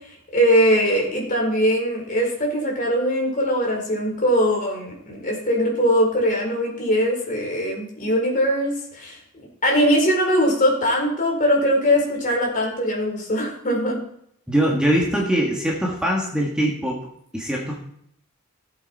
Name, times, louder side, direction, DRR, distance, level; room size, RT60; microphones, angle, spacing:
voice 1, 0.3-9.2 9.6-14.0, equal, 40° left, -1 dB, 4.5 m, -21 dB
voice 2, 14.5-17.0 17.3-17.8, right 1 dB, 5° right, -3 dB, 2.0 m, -22 dB
17.0 x 8.1 x 4.4 m, 0.69 s
head